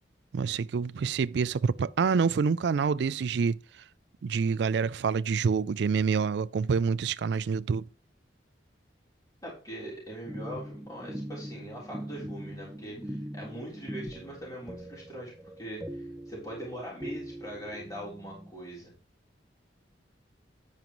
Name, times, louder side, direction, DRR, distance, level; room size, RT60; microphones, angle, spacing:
voice 1, 0.3-3.6 4.2-7.9, right 5 dB, 65° right, 0.3 m, -27 dB
voice 2, 9.4-15.3 15.6-18.9, right 1 dB, 20° left, 3.8 m, -42 dB
sound 1, 10.2-18.5, equal, 5° right, 0.7 m, -41 dB
10.5 x 8.9 x 3.0 m
head